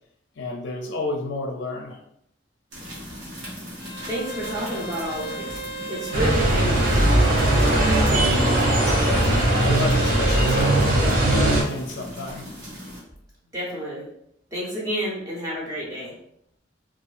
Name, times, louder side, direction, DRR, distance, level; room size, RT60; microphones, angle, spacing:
voice 1, 0.4-2.0 9.0-12.5, left 2 dB, 65° left, 1 dB, 0.5 m, -31 dB
sound 1, 2.7-13.0, equal, 75° right, 1.1 m, -38 dB
Bowed string instrument, 3.8-10.7, right 3 dB, 25° left, 0.7 m, -35 dB
voice 2, 4.1-5.6 5.9-7.3 13.5-14.1 14.5-16.1, equal, 20° right, -5 dB, 0.8 m, -30 dB
sound 2, 6.1-11.6, right 1 dB, 50° right, 0.8 m, -19 dB
2.6 x 2.4 x 2.4 m, 0.72 s
head